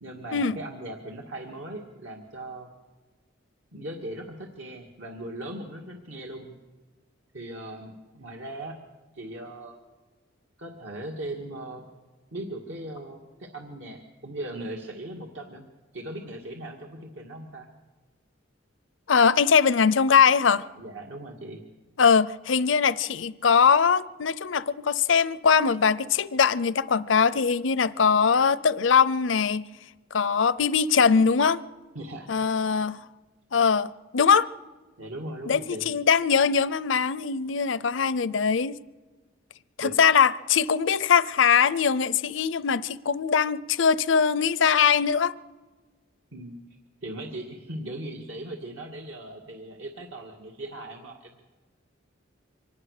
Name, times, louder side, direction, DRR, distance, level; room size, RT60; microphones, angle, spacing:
voice 1, 0.0-2.7 3.7-6.5 7.3-8.8 9.1-9.8 10.6-11.9 12.3-17.7 20.8-21.6 31.9-32.3 35.0-35.9 39.8-39.9 46.3-46.6 47.0-51.4, right 1 dB, 75° right, 2.1 m, -38 dB
voice 2, 19.1-20.7 22.0-29.6 30.1-31.6 32.3-33.0 33.5-34.5 35.5-38.8 39.8-45.3, left 6 dB, 75° left, 0.6 m, -21 dB
24.5 x 19.5 x 6.6 m
head